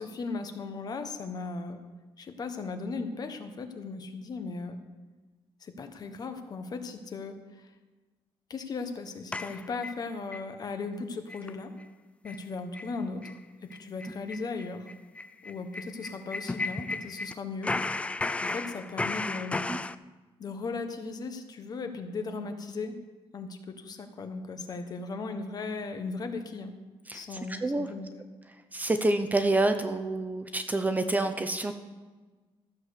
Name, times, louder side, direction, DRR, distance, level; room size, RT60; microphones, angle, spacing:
voice 1, 0.0-1.8 2.2-4.8 5.6-7.7 8.5-11.7 12.2-14.9 15.4-18.1 18.4-19.6 20.4-22.9 23.3-26.7 27.1-28.1, left 4 dB, 40° left, 7 dB, 1.3 m, -37 dB
sound 1, 9.3-10.4 10.8-10.9 11.3-11.5 11.8-11.9 12.2-12.4 12.7-12.9 13.2-13.4 13.7-17.3 17.6-19.9, left 3 dB, 10° left, 0.3 m, -34 dB
voice 2, 27.1-27.9 28.7-31.7, right 2 dB, 15° right, 8 dB, 0.7 m, -28 dB
14.0 x 7.5 x 6.7 m, 1.3 s
cardioid pair, 140°, 10 cm